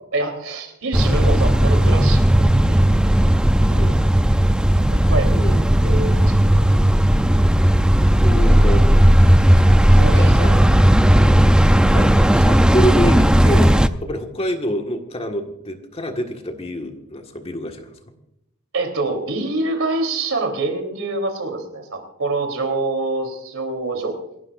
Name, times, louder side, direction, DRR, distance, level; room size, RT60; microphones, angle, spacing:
voice 1, 0.1-2.2 2.6-3.1 3.7-3.9 5.1-6.8 9.8-10.6 18.7-24.2, right 2 dB, 65° right, 5 dB, 3.5 m, -26 dB
sound 1, 0.9-13.9, equal, 5° right, 0.5 m, -14 dB
voice 2, 5.3-5.7 8.2-9.0 9.6-9.8 10.2-10.5 11.2-11.6 11.9-13.7 14.0-18.2, equal, 30° left, 4 dB, 1.6 m, -27 dB
28.0 x 12.0 x 2.5 m, 0.80 s
head